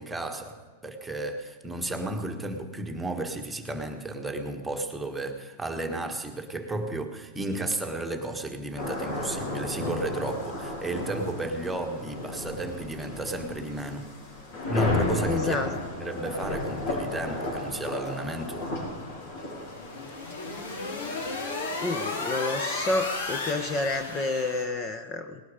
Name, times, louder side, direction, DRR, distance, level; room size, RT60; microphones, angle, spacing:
voice 1, 0.0-14.1 14.7-15.7 16.0-18.6, right 2 dB, 5° right, 4 dB, 1.5 m, -33 dB
sound 1, 8.8-24.0, left 2 dB, 60° left, 5.6 m, -34 dB
voice 2, 15.2-15.7 21.8-25.4, left 2 dB, 25° left, 8 dB, 0.9 m, -29 dB
sound 2, 19.6-24.6, left 3 dB, 80° left, 3.1 m, -33 dB
19.0 x 11.5 x 5.0 m, 1.5 s
supercardioid pair, 140°, 0 cm